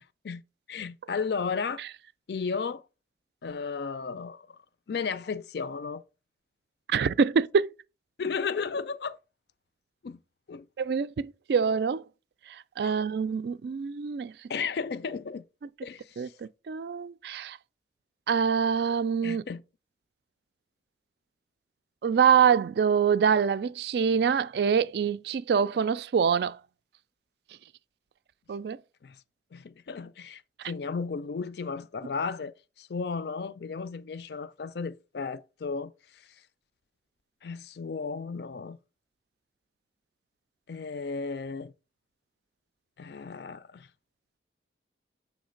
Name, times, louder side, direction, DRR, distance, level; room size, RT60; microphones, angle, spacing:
voice 1, 0.7-1.8 2.3-2.8 3.4-4.5 4.9-6.0 8.2-9.2 10.0-10.2 10.5-10.7 12.8-13.0 14.5-15.4 15.8-16.3 19.2-19.6 29.0-29.2 29.5-30.4 30.7-36.2 37.4-38.8 40.7-41.7 43.0-43.9, left 5 dB, 65° left, 0.4 m, -34 dB
voice 2, 6.9-7.7 10.8-12.0 12.8-14.3 16.2-17.6 18.3-19.4 22.0-26.6 28.5-28.8, right 6 dB, 65° right, 0.3 m, -25 dB
7.1 x 3.2 x 5.0 m
head